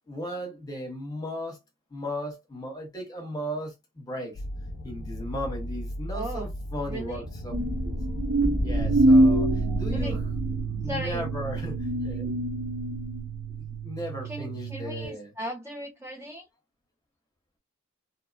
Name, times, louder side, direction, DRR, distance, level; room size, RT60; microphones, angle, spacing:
voice 1, 0.1-1.6 1.9-4.4 4.8-7.5 7.8-8.0 8.6-10.2 10.8-12.3 13.6-15.3, equal, 20° left, 0.9 m, -36 dB
sound 1, 4.3-10.2, equal, 70° left, 0.5 m, -36 dB
voice 2, 6.1-6.5 6.9-7.2 9.9-10.2 10.8-11.2 14.3-16.4, equal, 10° right, 0.4 m, -37 dB
sound 2, 7.5-13.2, right 1 dB, 90° right, 1.4 m, -25 dB
sound 3, 8.8-15.1, right 10 dB, 55° right, 1.1 m, -34 dB
2.8 x 2.1 x 2.5 m
head